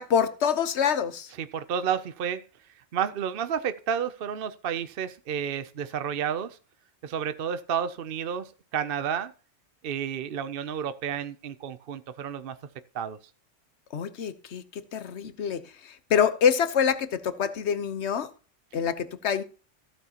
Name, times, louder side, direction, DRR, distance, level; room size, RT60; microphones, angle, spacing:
voice 1, 0.0-1.3 13.9-18.3 18.7-19.4, left 7 dB, 65° left, 1.2 m, -26 dB
voice 2, 1.4-2.4 2.9-6.6 7.0-9.3 9.8-12.6 12.9-13.2, right 8 dB, 55° right, 0.8 m, -31 dB
15.0 x 8.9 x 2.9 m
omnidirectional pair, 1.3 m